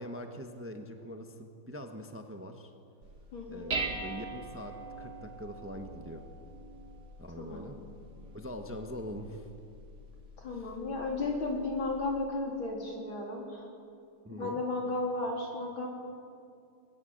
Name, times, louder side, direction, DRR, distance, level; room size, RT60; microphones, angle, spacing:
voice 1, 0.0-2.7 3.5-6.2 7.2-7.8 8.3-9.5 10.5-10.7 14.2-14.6, equal, 10° right, 5 dB, 1.1 m, -43 dB
Dishes pots and pans, 3.0-12.3, right 3 dB, 55° right, 2.3 m, -43 dB
voice 2, 3.3-3.8 7.4-7.7 10.4-13.7 14.3-15.9, left 2 dB, 80° left, -1 dB, 4.6 m, -34 dB
21.5 x 21.5 x 8.0 m, 2.5 s
omnidirectional pair, 2.2 m